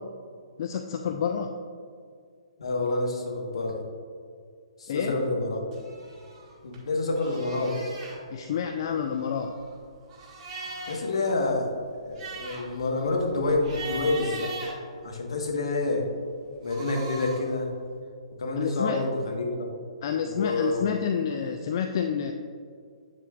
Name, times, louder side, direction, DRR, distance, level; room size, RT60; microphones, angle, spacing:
voice 1, 0.6-1.5 4.9-5.2 8.3-9.6 18.6-19.0 20.0-22.3, left 8 dB, 45° left, 6 dB, 0.4 m, -29 dB
voice 2, 2.6-3.8 4.8-5.7 6.6-7.8 10.9-11.7 12.0-14.5 15.0-16.1 16.6-17.7 18.4-19.7 20.2-20.9, left 2 dB, 65° left, 1 dB, 1.3 m, -28 dB
sound 1, 5.7-6.8 7.1-8.2 9.0-11.1 11.5-11.6 11.9-15.5 16.4-17.5, right 3 dB, 25° right, 1.6 m, -40 dB
8.2 x 7.4 x 2.4 m, 2.2 s
figure-of-eight pair, 125°, 3 cm